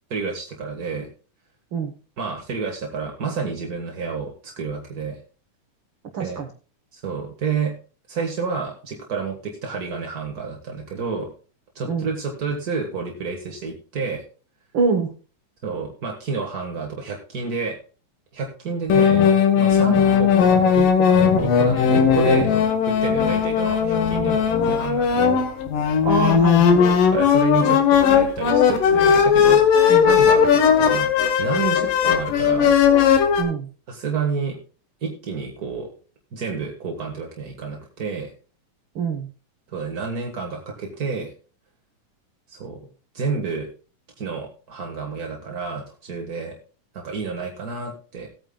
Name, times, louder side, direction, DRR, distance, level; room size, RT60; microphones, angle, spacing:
voice 1, 0.1-1.1 2.2-5.2 6.2-6.4 6.9-7.7 8.1-11.3 11.7-14.2 15.6-17.8 18.3-19.2 19.5-22.5 22.9-25.2 27.1-29.7 30.0-31.1 31.4-32.8 33.9-34.6 35.0-35.9 36.3-38.3 39.7-41.3 42.5-42.8 43.1-43.7 44.2-46.6 46.9-48.3, right 5 dB, 45° right, 1 dB, 1.2 m, -29 dB
voice 2, 6.1-6.5 11.9-12.1 14.7-15.1 26.0-26.8 29.9-30.1 33.4-33.7 38.9-39.3, right 5 dB, 70° right, 5 dB, 1.1 m, -24 dB
sound 1, 18.9-33.4, left 7 dB, 80° left, 2.9 m, -17 dB
18.5 x 9.0 x 2.3 m, 0.37 s
omnidirectional pair, 3.8 m